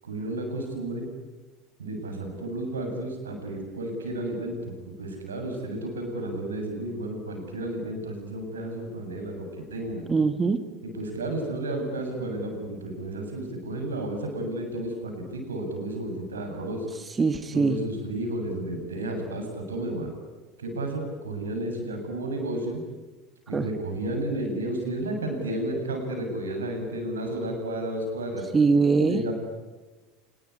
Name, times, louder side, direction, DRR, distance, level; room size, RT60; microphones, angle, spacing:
voice 1, 0.0-1.1 1.8-4.7 5.0-10.0 10.8-16.9 17.5-20.1 20.6-22.8 23.5-28.5 29.0-29.3, right 1 dB, 80° right, 4 dB, 7.5 m, -32 dB
voice 2, 10.1-10.6 17.2-17.9 23.5-23.7 28.5-29.2, right 4 dB, 20° right, 9 dB, 1.8 m, -22 dB
27.0 x 21.5 x 9.8 m, 1.2 s
figure-of-eight pair, 75°, 0 cm